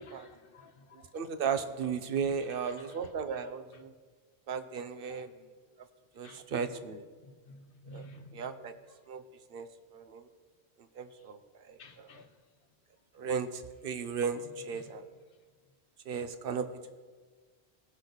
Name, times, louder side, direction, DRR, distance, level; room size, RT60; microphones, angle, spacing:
voice 1, 0.0-1.1 2.7-3.0 5.1-5.2 6.2-6.4 7.2-8.5 11.8-12.3 14.7-14.9, left 1 dB, 55° left, 1.1 m, -52 dB
voice 2, 1.1-3.9 4.5-5.3 6.2-7.1 7.9-8.1 8.3-8.7 9.1-9.2 9.5-9.7 9.9-10.2 11.0-11.4 11.7-12.1 13.2-15.0 16.1-16.7, right 6 dB, 60° right, 0.9 m, -35 dB
18.0 x 6.4 x 4.0 m
omnidirectional pair, 1.1 m